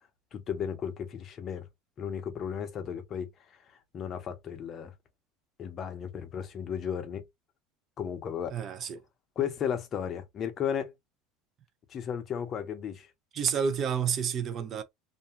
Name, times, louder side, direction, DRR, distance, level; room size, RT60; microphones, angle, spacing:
voice 1, 0.3-1.7 2.0-4.9 5.6-7.2 8.0-8.5 9.4-10.9 11.9-13.1, left 8 dB, 30° left, 0.7 m, -34 dB
voice 2, 8.5-9.0 13.3-14.8, right 7 dB, 35° right, 0.5 m, -29 dB
2.5 x 2.3 x 2.8 m
cardioid pair, 150°, 0 cm